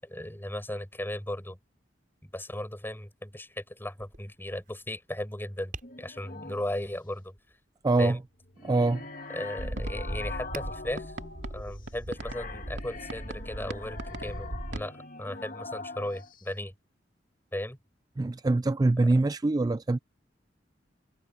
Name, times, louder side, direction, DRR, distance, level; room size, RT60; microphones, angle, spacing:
voice 1, 0.0-1.6 2.2-5.7 6.0-7.3 8.0-8.2 9.3-11.1 11.5-16.7 17.5-17.8, left 1 dB, 10° left, 6.8 m, -36 dB
Tap, 3.9-13.6, right 3 dB, 50° right, 6.2 m, -53 dB
sound 1, 5.8-6.8 8.3-16.4, left 3 dB, 50° left, 2.3 m, -43 dB
voice 2, 7.8-8.2 8.6-9.0 18.2-20.0, right 2 dB, 20° right, 0.3 m, -24 dB
sound 2, 9.6-14.9, right 1 dB, 70° right, 2.3 m, -38 dB
head